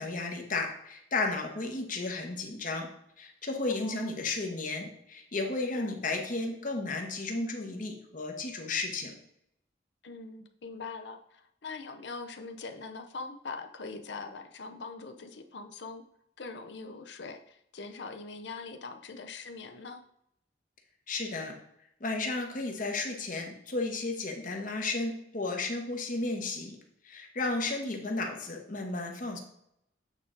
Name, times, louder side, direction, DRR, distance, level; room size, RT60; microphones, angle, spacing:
voice 1, 0.0-2.9 3.2-9.1 21.1-21.6 22.0-26.8 27.0-29.4, left 3 dB, 45° left, 3 dB, 1.1 m, -33 dB
voice 2, 3.7-4.1 5.7-6.0 10.0-16.0 16.4-20.0 27.8-28.0, left 4 dB, 70° left, 7 dB, 0.6 m, -42 dB
8.2 x 3.9 x 3.9 m, 0.75 s
head